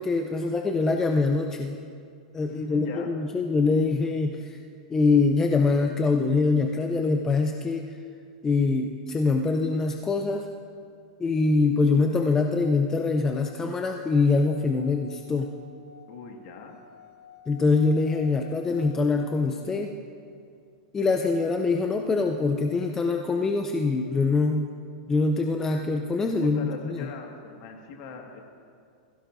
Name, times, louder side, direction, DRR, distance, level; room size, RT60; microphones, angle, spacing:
voice 1, 0.0-1.8 2.3-4.6 4.9-7.9 8.4-10.5 11.2-15.5 17.5-19.9 20.9-24.7 25.1-27.1, left 3 dB, 10° left, 4 dB, 0.5 m, -24 dB
voice 2, 2.5-3.1 16.1-16.8 26.4-28.4, left 5 dB, 45° left, 2 dB, 1.8 m, -41 dB
Singing / Glass, 13.1-19.7, left 6 dB, 50° right, 1.7 m, -52 dB
21.0 x 16.0 x 2.6 m, 2.3 s
supercardioid pair, 160°, 4 cm